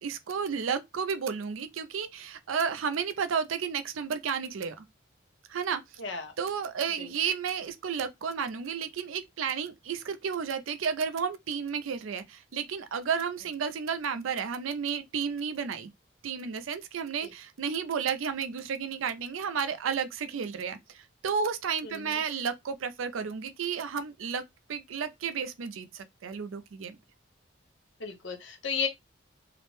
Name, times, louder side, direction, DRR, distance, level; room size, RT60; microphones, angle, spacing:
voice 1, 0.0-4.8 5.5-5.8 6.4-15.9 16.2-24.4 24.7-27.0, right 6 dB, 85° right, 0.4 m, -32 dB
voice 2, 6.0-6.3 7.0-7.1 17.2-17.3 21.8-22.2 28.0-28.9, left 6 dB, 70° left, 0.8 m, -34 dB
2.4 x 2.1 x 3.0 m
head